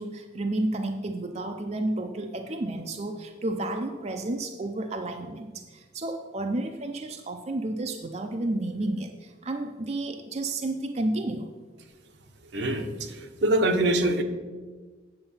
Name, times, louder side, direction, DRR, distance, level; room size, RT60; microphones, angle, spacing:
voice 1, 0.0-11.5, right 2 dB, 35° right, 5 dB, 0.5 m, -31 dB
voice 2, 12.5-14.2, right 1 dB, 70° right, 5 dB, 1.0 m, -24 dB
8.9 x 6.7 x 5.6 m, 1.4 s
head